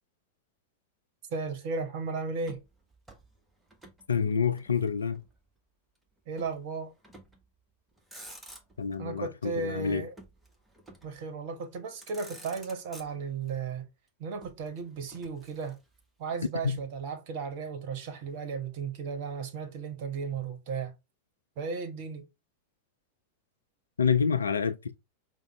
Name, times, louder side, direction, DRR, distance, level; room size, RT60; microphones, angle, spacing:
voice 1, 1.3-2.6 6.3-6.9 9.0-10.1 11.0-13.9 14.2-15.8 16.2-20.9 21.6-22.3, right 5 dB, 50° right, 0.8 m, -35 dB
Motor vehicle (road), 2.4-4.0 4.3-5.4 6.4-6.6 7.0-7.5 7.9-9.0 10.2-11.2 11.7-11.8 12.0-13.5 14.4-16.0, right 1 dB, 5° right, 0.8 m, -51 dB
voice 2, 4.1-5.2 8.8-10.1 16.6-16.8 24.0-24.9, left 6 dB, 75° left, 0.4 m, -27 dB
5.0 x 2.0 x 3.0 m
figure-of-eight pair, 90°, 0 cm